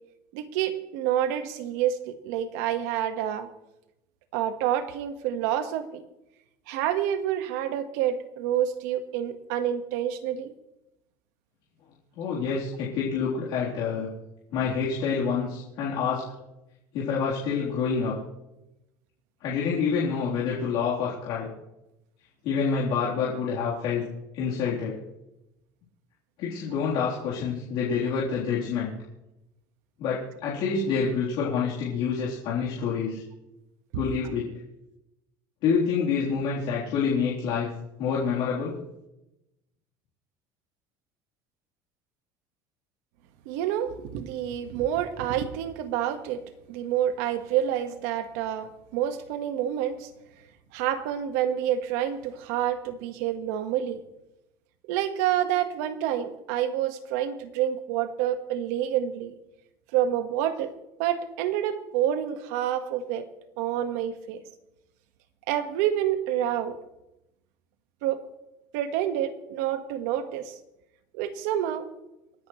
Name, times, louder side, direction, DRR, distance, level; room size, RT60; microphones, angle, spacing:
voice 1, 0.3-3.5 4.3-6.0 6.7-10.5 43.4-46.4 46.7-50.1 50.7-54.0 54.9-59.3 59.9-60.7 61.0-63.3 63.6-64.4 65.5-66.8 68.0-68.2 68.7-70.5 71.1-71.9, right 10 dB, 80° right, 9 dB, 1.5 m, -28 dB
voice 2, 12.2-14.1 14.5-16.3 16.9-18.2 19.4-21.5 22.4-24.1 24.3-25.0 26.4-28.9 30.0-33.2 33.9-34.5 35.6-37.7 38.0-38.8, left 6 dB, 60° left, -7 dB, 3.6 m, -27 dB
28.5 x 10.5 x 3.2 m, 0.92 s
cardioid pair, 150°, 9 cm